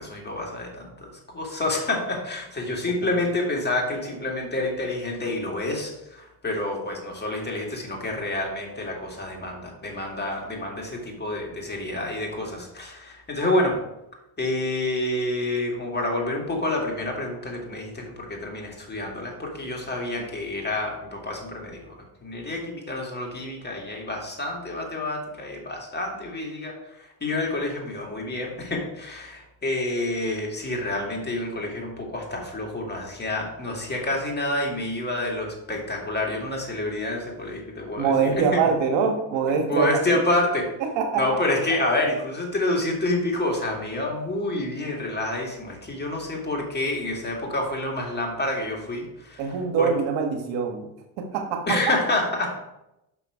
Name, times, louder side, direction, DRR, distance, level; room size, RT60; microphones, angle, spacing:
voice 1, 0.0-13.8 14.4-38.6 39.7-40.7 41.2-49.5 49.8-49.9 51.7-52.6, left 2 dB, 20° left, 0 dB, 2.2 m, -28 dB
voice 2, 38.0-39.9 40.8-41.2 49.4-50.9 51.2-51.8, right 6 dB, 70° right, 5 dB, 1.4 m, -24 dB
5.9 x 5.7 x 4.8 m, 0.89 s
supercardioid pair, 85°, 46 cm